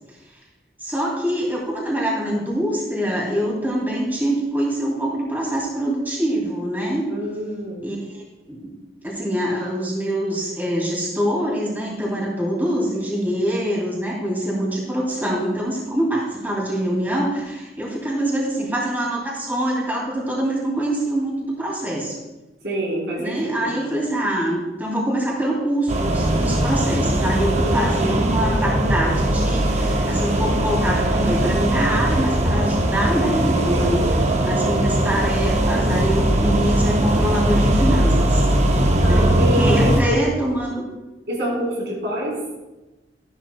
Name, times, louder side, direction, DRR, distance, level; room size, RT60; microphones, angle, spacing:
voice 1, 0.8-7.0 7.8-8.7 9.0-22.2 23.2-34.0 34.4-38.5 39.0-40.8, right 1 dB, 10° right, -4 dB, 2.4 m, -24 dB
voice 2, 7.1-7.8 22.6-23.7 27.5-28.2 33.5-34.1 39.0-40.2 41.3-42.3, right 1 dB, 70° right, -5 dB, 3.7 m, -26 dB
sound 1, 25.9-40.0, right 1 dB, 40° right, 0.9 m, -20 dB
13.5 x 11.5 x 2.2 m, 1.1 s
head